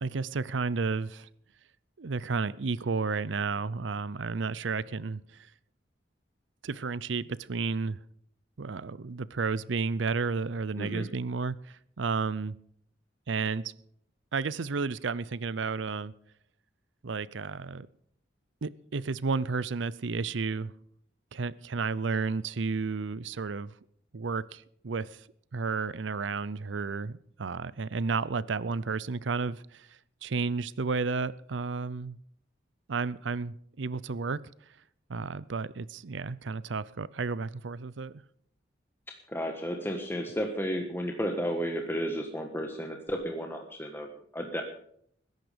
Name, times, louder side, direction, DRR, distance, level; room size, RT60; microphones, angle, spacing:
voice 1, 0.0-1.3 2.0-5.5 6.6-8.0 8.6-12.5 13.3-13.6 14.3-16.1 17.0-17.9 18.6-20.7 21.3-23.7 24.1-25.2 25.5-29.9 30.2-32.2 32.9-34.4 35.1-38.1, right 4 dB, 80° right, 19 dB, 0.6 m, -32 dB
voice 2, 10.8-11.1 39.1-44.6, equal, 10° left, 3 dB, 1.4 m, -33 dB
20.5 x 11.0 x 5.2 m, 0.66 s
head